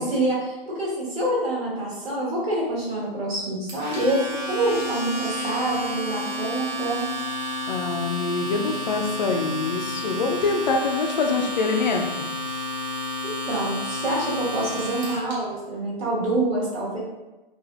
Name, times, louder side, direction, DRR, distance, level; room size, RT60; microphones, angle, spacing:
voice 1, 0.0-7.0 13.2-17.0, right 1 dB, 75° right, -6 dB, 1.4 m, -26 dB
Domestic sounds home sounds, 3.7-15.3, left 1 dB, 45° right, 1.2 m, -31 dB
voice 2, 7.7-12.3, left 4 dB, 45° left, 3 dB, 0.5 m, -25 dB
3.4 x 2.5 x 2.4 m, 1.1 s
hypercardioid pair, 145°, 31 cm